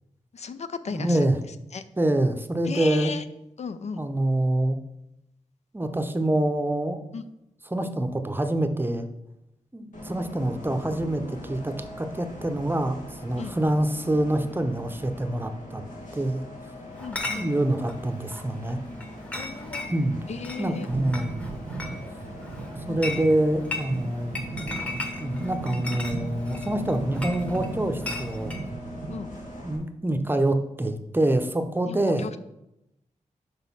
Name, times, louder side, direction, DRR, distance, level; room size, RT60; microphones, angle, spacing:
voice 1, 0.3-1.2 1.7-1.8 2.7-3.2 3.6-4.0 7.1-7.2 13.4-13.6 17.0-17.5 19.3-19.9 20.3-20.9 22.9-23.2 29.1-29.3 31.9-32.4, left 5 dB, 60° left, 12 dB, 0.4 m, -35 dB
voice 2, 0.9-1.4 2.0-3.2 4.0-4.8 5.7-7.0 7.7-9.1 9.7-15.8 16.1-16.4 17.3-18.8 19.9-20.2 20.6-21.4 22.9-24.3 25.2-28.5 29.6-32.3, right 1 dB, 15° right, 7 dB, 0.7 m, -26 dB
Bus, 9.9-29.7, left 1 dB, 85° left, 1.6 m, -41 dB
Chatter / Chink clink, 17.0-28.7, left 3 dB, 10° left, 1.0 m, -38 dB
sound 1, 20.9-29.2, right 3 dB, 60° right, 0.8 m, -37 dB
6.2 x 5.1 x 5.5 m, 0.86 s
wide cardioid pair, 100°, 13 cm